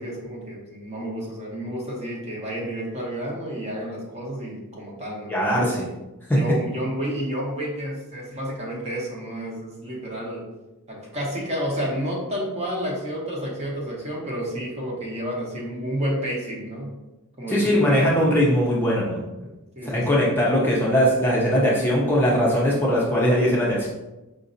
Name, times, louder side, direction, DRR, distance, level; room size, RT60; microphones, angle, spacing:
voice 1, 0.0-5.3 5.7-5.8 6.3-10.4 10.9-16.9 17.4-18.1 19.8-20.2, equal, 30° right, -2 dB, 0.9 m, -30 dB
voice 2, 5.3-5.9 6.3-6.4 17.5-19.2 19.8-23.9, equal, 10° left, -5 dB, 0.6 m, -20 dB
5.0 x 2.6 x 2.6 m, 1.0 s
head